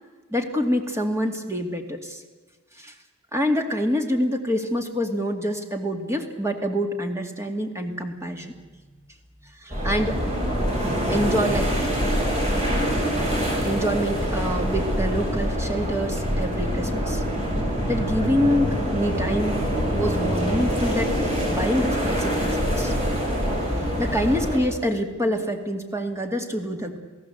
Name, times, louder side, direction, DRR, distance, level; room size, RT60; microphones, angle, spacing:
voice 1, 0.3-2.2 2.8-2.9 3.3-8.5 9.6-10.2 11.1-11.7 13.6-17.2 17.9-19.7 19.9-22.9 24.0-27.0, equal, 15° right, 4 dB, 2.3 m, -26 dB
sound 1, 9.7-24.6, equal, 35° right, 7.3 m, -25 dB
28.5 x 17.5 x 8.0 m, 1.3 s
head